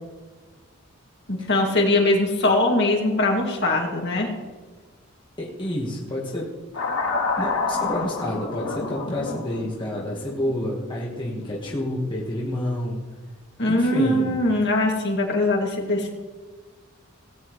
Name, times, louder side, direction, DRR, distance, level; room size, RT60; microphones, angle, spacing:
voice 1, 1.3-4.3 13.6-16.1, left 2 dB, 55° left, 0 dB, 2.3 m, -21 dB
voice 2, 5.4-6.5 6.7-7.0 7.4-13.0 13.7-14.4, left 1 dB, 25° left, -4 dB, 1.5 m, -29 dB
sound 1, 6.7-11.8, left 3 dB, 70° left, 2.3 m, -29 dB
17.5 x 9.0 x 3.2 m, 1.4 s
head